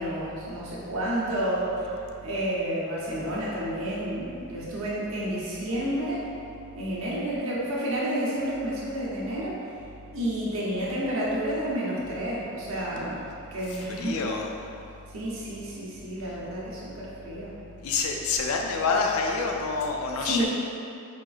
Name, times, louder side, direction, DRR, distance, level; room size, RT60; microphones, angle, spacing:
voice 1, 0.0-1.9 2.2-6.2 6.8-9.6 10.1-13.2 13.5-14.2 15.1-17.5 20.2-20.5, right 1 dB, 75° right, -7 dB, 0.8 m, -30 dB
voice 2, 14.0-14.5 17.8-20.5, left 4 dB, 85° left, 1 dB, 0.4 m, -27 dB
4.5 x 2.5 x 2.3 m, 2.6 s
head